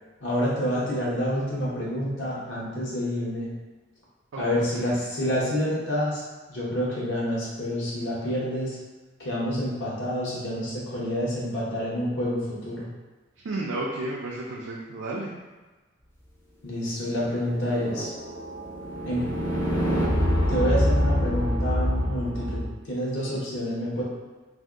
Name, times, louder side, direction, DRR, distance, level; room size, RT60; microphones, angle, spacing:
voice 1, 0.2-3.5 4.4-6.2 6.5-8.8 9.2-12.9 16.6-18.1 19.1-19.2 20.5-24.0, equal, 65° left, -7 dB, 0.9 m, -28 dB
voice 2, 4.3-4.7 13.4-15.3, right 2 dB, 85° right, -4 dB, 0.4 m, -32 dB
sound 1, 17.1-22.7, equal, 10° left, 0.4 m, -26 dB
2.7 x 2.2 x 3.5 m, 1.2 s
head